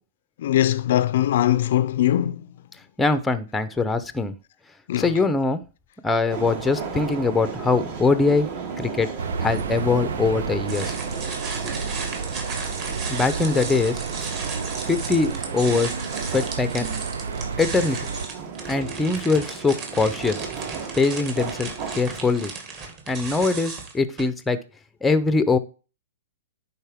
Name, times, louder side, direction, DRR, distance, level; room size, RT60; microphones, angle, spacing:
voice 1, 0.4-2.5 4.9-5.1, left 12 dB, 60° left, 0.4 m, -21 dB
voice 2, 3.0-4.3 5.0-5.6 6.0-8.5 8.8-9.1 9.4-10.9 13.1-14.0 14.9-15.9 16.3-16.9 17.6-18.0 18.7-20.4 21.0-21.7 22.0-22.5 23.1-24.6 25.0-25.6, left 3 dB, 5° left, 0.6 m, -22 dB
sound 1, 6.3-22.5, right 5 dB, 60° right, 2.7 m, -35 dB
sound 2, 9.2-18.3, right 5 dB, 85° right, 0.7 m, -31 dB
sound 3, 10.7-24.2, right 4 dB, 30° right, 1.9 m, -35 dB
10.5 x 4.2 x 3.5 m
hypercardioid pair, 160°, 0 cm